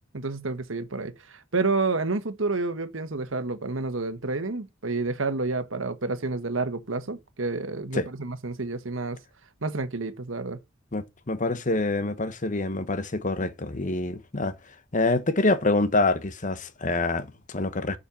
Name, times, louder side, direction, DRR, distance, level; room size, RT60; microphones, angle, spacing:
voice 1, 0.1-9.2 9.6-10.6, right 3 dB, 80° right, 1.3 m, -29 dB
voice 2, 10.9-14.5 14.9-18.0, left 2 dB, 40° left, 1.1 m, -26 dB
7.3 x 5.5 x 6.9 m
head